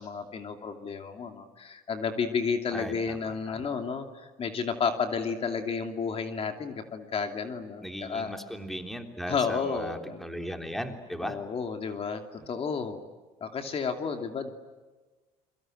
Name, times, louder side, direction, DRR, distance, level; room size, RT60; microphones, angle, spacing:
voice 1, 0.0-8.3 9.3-10.2 11.2-13.0 13.4-14.5, left 5 dB, 40° left, 5 dB, 2.8 m, -32 dB
voice 2, 2.7-3.7 7.8-11.4 12.4-12.5, equal, ahead, 5 dB, 3.4 m, -37 dB
29.0 x 23.5 x 7.9 m, 1.3 s
supercardioid pair, 105°, 16 cm